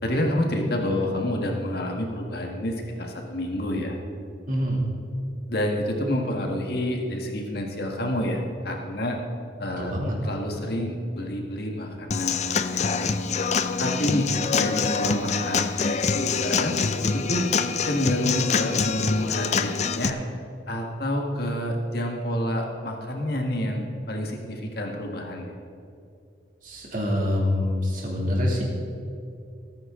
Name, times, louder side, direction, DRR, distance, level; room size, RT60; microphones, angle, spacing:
voice 1, 0.0-4.0 5.5-9.2 9.6-9.9 10.2-13.1 13.8-14.3 14.6-16.8 17.0-17.4 17.8-20.2 20.7-25.5, left 1 dB, 55° left, 2 dB, 1.7 m, -28 dB
voice 2, 4.5-4.8 9.8-10.2 26.6-28.6, left 1 dB, 45° right, -2 dB, 2.7 m, -25 dB
Human voice / Acoustic guitar / Drum, 12.1-20.1, left 5 dB, 40° left, 0.5 m, -25 dB
18.0 x 9.4 x 3.8 m, 2.5 s
head